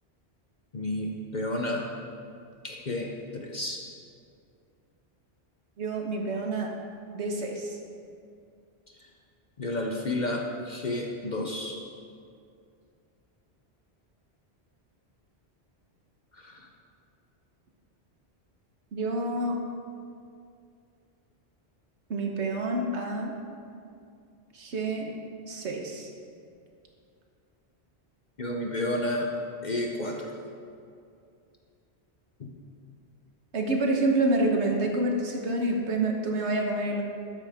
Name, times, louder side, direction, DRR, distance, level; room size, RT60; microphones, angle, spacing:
voice 1, 0.7-1.9 2.6-3.8 9.6-11.7 16.3-16.7 28.4-29.3 29.6-30.3 32.4-32.5, left 1 dB, 45° left, 0 dB, 0.9 m, -31 dB
voice 2, 5.8-6.7 7.1-7.8 18.9-19.6 22.1-23.3 24.5-25.1 25.5-26.1 33.5-37.0, right 2 dB, 85° right, 1 dB, 1.6 m, -28 dB
12.5 x 9.8 x 3.6 m, 2.4 s
omnidirectional pair, 1.1 m